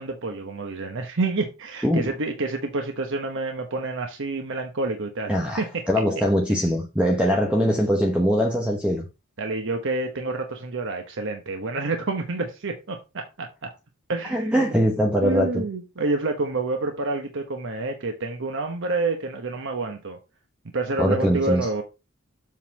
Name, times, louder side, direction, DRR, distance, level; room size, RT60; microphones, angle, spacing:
voice 1, 0.0-5.8 6.5-6.6 9.4-13.7 14.1-14.8 15.2-20.2 20.7-21.8, right 3 dB, 60° right, 1.0 m, -28 dB
voice 2, 5.3-9.1 14.3-15.6 21.0-21.7, equal, 5° right, 1.0 m, -22 dB
7.5 x 4.0 x 5.2 m
head